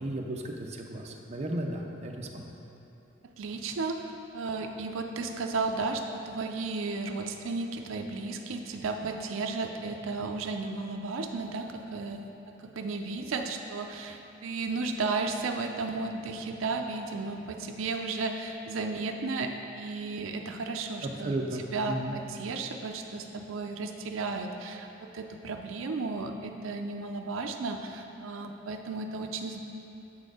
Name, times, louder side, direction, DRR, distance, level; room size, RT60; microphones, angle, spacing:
voice 1, 0.0-2.6 21.2-22.2, right 1 dB, 35° right, 1 dB, 0.5 m, -34 dB
voice 2, 3.2-4.0 4.3-21.4 21.7-29.6, right 3 dB, 85° right, 4 dB, 0.4 m, -34 dB
7.3 x 4.3 x 4.8 m, 2.9 s
head